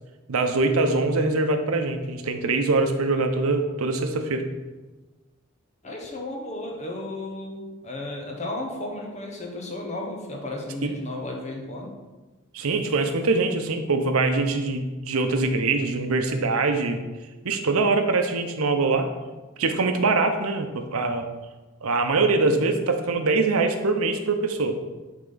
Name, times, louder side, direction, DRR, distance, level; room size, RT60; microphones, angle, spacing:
voice 1, 0.3-4.4 10.8-10.9 12.5-17.0 17.4-19.1 19.6-21.3 21.8-24.8, right 3 dB, 85° right, 6 dB, 0.7 m, -23 dB
voice 2, 5.8-11.9, left 2 dB, 30° left, 0 dB, 1.0 m, -34 dB
8.8 x 3.6 x 3.9 m, 1.2 s
head